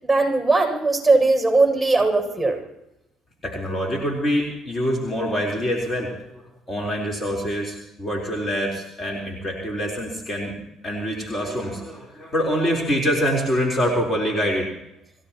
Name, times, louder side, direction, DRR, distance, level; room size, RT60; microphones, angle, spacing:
voice 1, 0.0-2.6, right 3 dB, 5° right, 2 dB, 6.9 m, -19 dB
voice 2, 3.4-6.3 6.7-10.5 10.8-14.7, equal, 30° left, 0 dB, 4.1 m, -25 dB
28.5 x 16.5 x 3.0 m, 0.86 s
hypercardioid pair, 65°, 0 cm